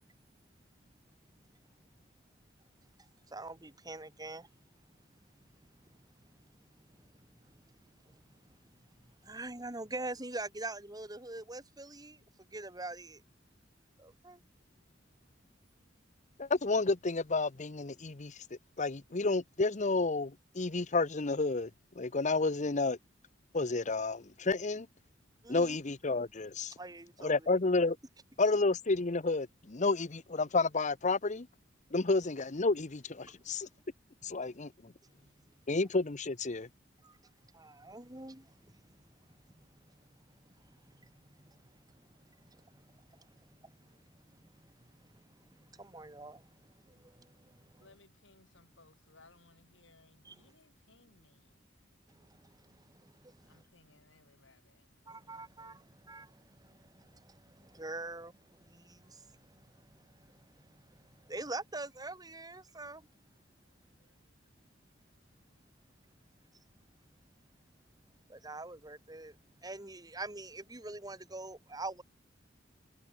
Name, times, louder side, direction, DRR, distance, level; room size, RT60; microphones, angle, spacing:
voice 1, 3.3-4.5 9.3-12.2 12.5-13.2 14.0-14.4 25.4-25.8 26.8-27.5 37.0-37.1 37.5-38.5 45.8-46.4 50.3-50.4 55.1-56.3 56.6-56.7 57.6-58.3 58.7-59.2 61.3-63.0 68.3-69.3 69.6-72.0, right 2 dB, 20° right, 3.5 m, -43 dB
voice 2, 16.4-18.3 18.8-21.7 22.0-23.0 23.5-24.9 25.5-26.7 27.2-28.0 28.4-31.5 31.9-33.7 34.2-34.9 35.7-36.7, left 3 dB, 40° left, 0.9 m, -30 dB
voice 3, 47.8-51.6 53.4-54.9 59.8-59.9 63.6-64.4 65.5-65.6, left 3 dB, 80° left, 6.1 m, -64 dB
head